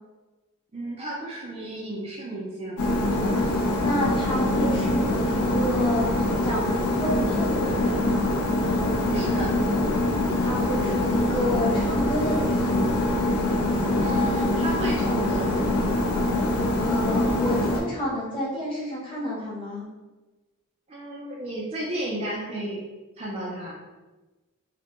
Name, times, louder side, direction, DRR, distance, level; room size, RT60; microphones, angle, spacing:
voice 1, 0.7-2.8 9.0-9.5 14.0-15.5 20.9-22.8 23.2-23.8, right 1 dB, 30° right, -3 dB, 0.3 m, -33 dB
sound 1, 2.8-17.8, left 1 dB, 90° left, 0.4 m, -24 dB
voice 2, 3.3-8.4 10.4-13.1 16.8-19.9, left 1 dB, 25° left, -6 dB, 0.7 m, -30 dB
2.1 x 2.0 x 2.9 m, 1.2 s
head